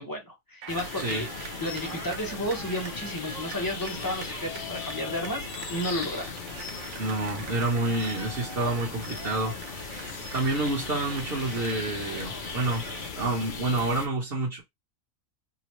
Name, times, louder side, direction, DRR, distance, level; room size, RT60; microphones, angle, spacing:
voice 1, 0.0-6.4, left 1 dB, 20° left, 0.7 m, -33 dB
sound 1, 0.6-13.1, right 4 dB, 85° right, 1.1 m, -42 dB
sound 2, 0.7-14.1, left 5 dB, 55° left, 0.6 m, -38 dB
voice 2, 7.0-9.5 10.3-12.8 13.1-14.6, right 2 dB, 50° right, 1.1 m, -28 dB
3.0 x 2.0 x 2.9 m
omnidirectional pair, 1.4 m